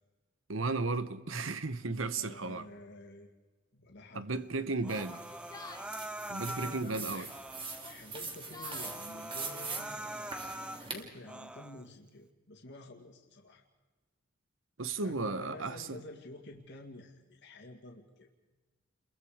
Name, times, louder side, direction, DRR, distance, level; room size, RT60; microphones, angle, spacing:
voice 1, 0.5-2.7 4.1-5.2 6.3-7.3 14.8-16.0, right 3 dB, 90° right, 1.1 m, -34 dB
voice 2, 2.2-3.3 3.7-4.5 6.4-7.3 7.8-10.0 10.8-13.6 15.0-18.3, left 2 dB, 65° left, 2.1 m, -50 dB
Yell, 4.8-5.9 6.9-7.3 7.7-8.9, left 3 dB, 20° left, 1.5 m, -50 dB
Human voice, 4.8-6.9 7.3-7.9 8.3-8.4 8.7-10.8 11.2-11.8, right 1 dB, 5° right, 0.7 m, -43 dB
sound 1, 4.9-11.0, right 4 dB, 25° right, 2.8 m, -43 dB
30.0 x 22.5 x 5.0 m
head